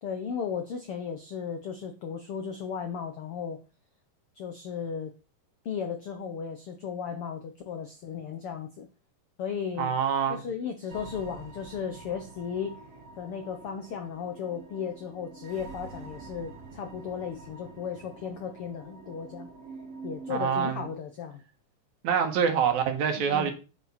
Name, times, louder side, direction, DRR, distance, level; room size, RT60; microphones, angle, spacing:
voice 1, 0.0-3.6 4.3-5.1 5.6-8.9 9.4-9.9 10.3-12.8 13.2-19.5 20.0-21.4 23.2-23.5, left 7 dB, 85° left, 1.2 m, -35 dB
voice 2, 9.8-10.4 20.3-20.8 22.0-23.5, right 7 dB, 65° right, 2.5 m, -25 dB
sound 1, 10.9-20.9, right 3 dB, 50° right, 2.3 m, -46 dB
8.8 x 7.3 x 4.3 m
omnidirectional pair, 4.0 m